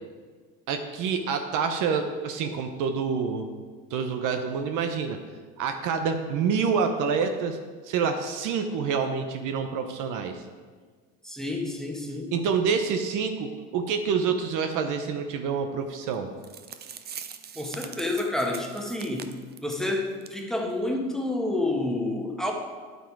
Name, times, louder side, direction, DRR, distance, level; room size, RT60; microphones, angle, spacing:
voice 1, 0.7-3.5 3.9-5.2 5.6-7.6 7.8-10.4 12.3-16.3, right 6 dB, 55° right, 6 dB, 1.0 m, -27 dB
voice 2, 11.2-12.3 17.6-19.3 19.6-22.5, left 2 dB, ahead, 1 dB, 1.4 m, -29 dB
sound 1, 16.1-16.2 16.4-19.9 20.2-20.4 20.7-20.8 21.3-21.4, right 8 dB, 25° right, 0.6 m, -42 dB
9.5 x 8.2 x 4.7 m, 1.5 s
supercardioid pair, 110°, 37 cm